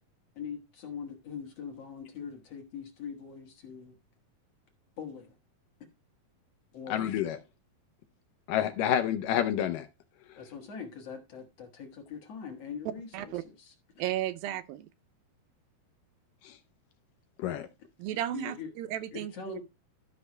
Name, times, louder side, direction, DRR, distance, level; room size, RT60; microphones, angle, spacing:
voice 1, 0.4-4.0 5.0-5.4 6.7-7.0 10.4-13.7 18.3-18.7 19.1-19.6, left 6 dB, 55° left, 2.2 m, -42 dB
voice 2, 6.9-7.4 8.5-9.9 16.4-16.6 17.4-17.7, left 10 dB, 75° left, 2.1 m, -28 dB
voice 3, 14.0-14.9 18.0-19.6, right 12 dB, 80° right, 2.3 m, -34 dB
13.0 x 5.8 x 3.2 m
omnidirectional pair, 4.3 m